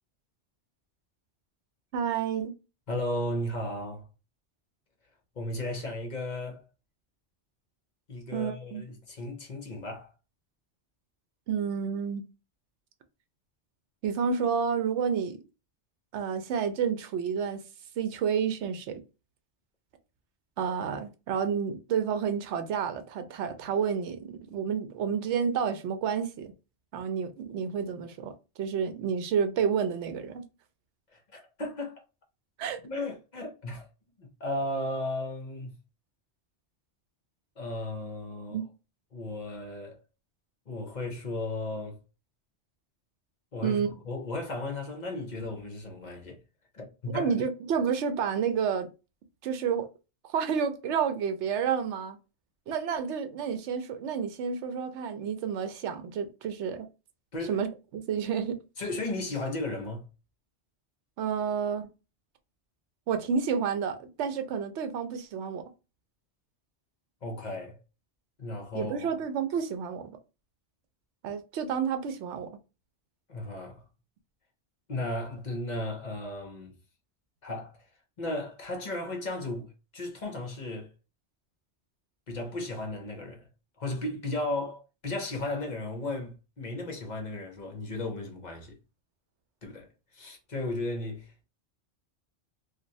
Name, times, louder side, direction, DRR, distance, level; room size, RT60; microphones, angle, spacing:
voice 1, 1.9-2.5 8.3-8.8 11.5-12.2 14.0-15.4 16.1-17.6 18.0-19.0 20.6-26.5 26.9-28.3 28.6-30.4 32.6-32.8 38.5-38.6 43.6-43.9 47.1-48.9 49.4-49.9 50.3-52.2 52.7-56.9 57.5-58.6 61.2-61.9 63.1-65.6 68.7-70.2 71.2-72.5, right 7 dB, 85° right, 0.9 m, -30 dB
voice 2, 2.9-4.1 5.4-6.6 8.1-10.1 31.1-32.0 32.8-33.8 34.2-35.7 37.6-38.6 39.1-40.0 40.7-42.0 43.5-46.4 46.7-47.3 57.3-57.6 58.8-60.1 67.2-67.8 68.4-69.1 73.3-73.8 74.9-76.8 77.4-77.8 78.2-80.9 82.3-83.5 83.8-88.8 89.6-91.4, left 2 dB, 45° left, 0.8 m, -35 dB
3.0 x 2.4 x 2.6 m
omnidirectional pair, 1.1 m